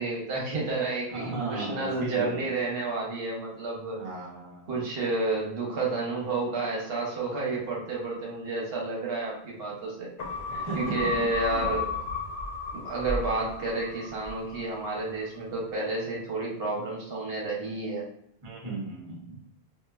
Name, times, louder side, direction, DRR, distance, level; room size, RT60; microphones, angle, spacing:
voice 1, 0.0-4.0 4.7-10.1 10.7-11.9 12.7-18.1, right 3 dB, 70° right, -2 dB, 0.9 m, -30 dB
voice 2, 1.1-2.4 3.9-4.7 10.5-11.1 11.5-11.7 18.4-19.4, right 2 dB, 35° right, -2 dB, 0.7 m, -36 dB
sound 1, 10.2-14.9 15.2-15.3, left 4 dB, 75° left, 0.8 m, -34 dB
3.0 x 2.2 x 2.3 m, 0.72 s
omnidirectional pair, 1.1 m